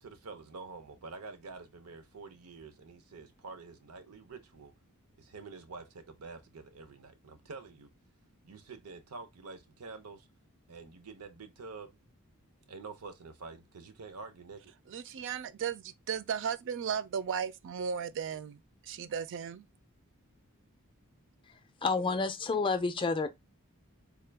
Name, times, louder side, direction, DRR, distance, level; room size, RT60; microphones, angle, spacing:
voice 1, 0.0-4.7 5.2-7.9 8.4-10.3 10.7-11.9 12.7-14.7, right 4 dB, 80° right, 0.7 m, -47 dB
voice 2, 14.9-19.7, right 7 dB, 55° right, 0.4 m, -36 dB
voice 3, 21.5-23.3, left 4 dB, 25° left, 0.4 m, -30 dB
3.7 x 2.2 x 3.3 m
head